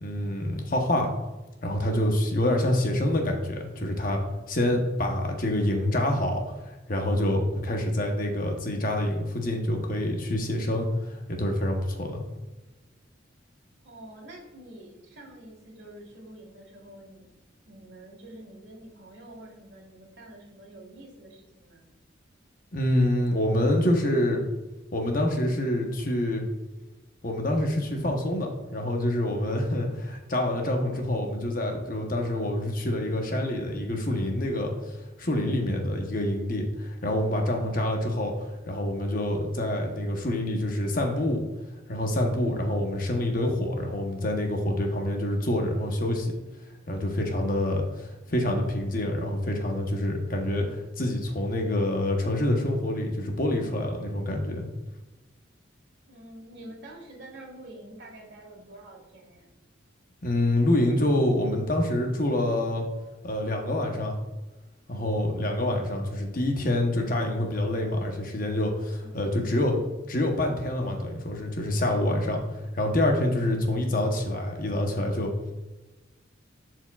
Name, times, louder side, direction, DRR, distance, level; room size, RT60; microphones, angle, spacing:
voice 1, 0.0-1.1 1.6-4.2 4.5-12.2 22.7-24.4 24.9-26.4 27.2-34.7 35.2-38.3 38.7-41.5 41.9-46.4 46.9-54.6 60.2-62.8 63.2-64.2 64.9-69.8 70.1-75.3, left 1 dB, 45° left, 2 dB, 1.0 m, -26 dB
voice 2, 13.8-17.3 17.7-21.9 37.6-38.1 56.1-59.5 69.0-69.3, right 1 dB, 65° right, 0 dB, 1.8 m, -47 dB
11.5 x 4.6 x 2.4 m, 1.1 s
head